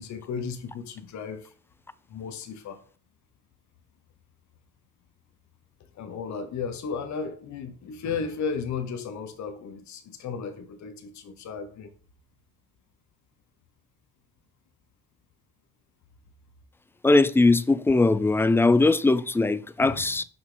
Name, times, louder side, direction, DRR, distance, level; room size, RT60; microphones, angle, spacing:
voice 1, 0.0-1.5 2.1-2.8 5.9-11.9 19.8-20.2, left 5 dB, 65° left, 1.0 m, -34 dB
voice 2, 17.0-20.2, left 3 dB, 10° left, 0.4 m, -20 dB
5.5 x 5.4 x 3.9 m
cardioid pair, 90°, 30 cm